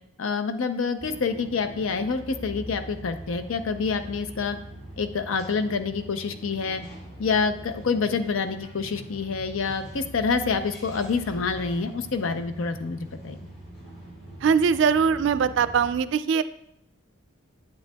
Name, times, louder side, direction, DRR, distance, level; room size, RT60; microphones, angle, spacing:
voice 1, 0.2-4.6 5.0-6.8 7.2-13.0 13.2-13.4, left 5 dB, 70° left, 8 dB, 0.5 m, -27 dB
sound 1, 1.0-15.9, right 1 dB, 50° left, 2.2 m, -43 dB
voice 2, 14.4-16.4, right 6 dB, 60° right, 13 dB, 0.3 m, -21 dB
8.8 x 8.5 x 2.2 m, 0.77 s
head